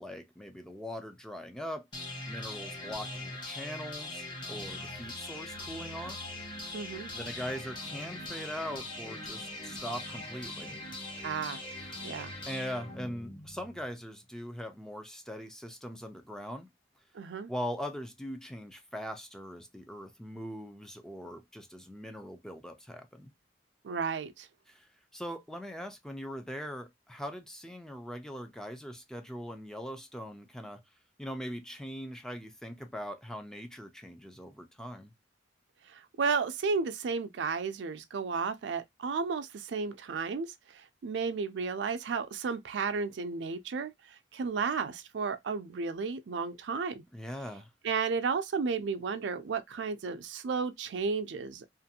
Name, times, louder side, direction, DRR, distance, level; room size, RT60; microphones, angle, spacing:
voice 1, 0.0-1.9 2.3-6.2 7.1-10.8 12.5-16.7 17.5-23.3 24.7-30.8 31.2-35.1 47.1-47.7, equal, 5° left, 0.4 m, -41 dB
sound 1, 1.9-13.9, left 2 dB, 25° left, 0.8 m, -41 dB
voice 2, 6.7-7.1 11.2-11.6 12.0-12.3 17.1-17.5 23.8-24.5 35.9-47.0 47.8-51.6, right 5 dB, 70° right, 0.4 m, -33 dB
2.5 x 2.5 x 2.7 m
head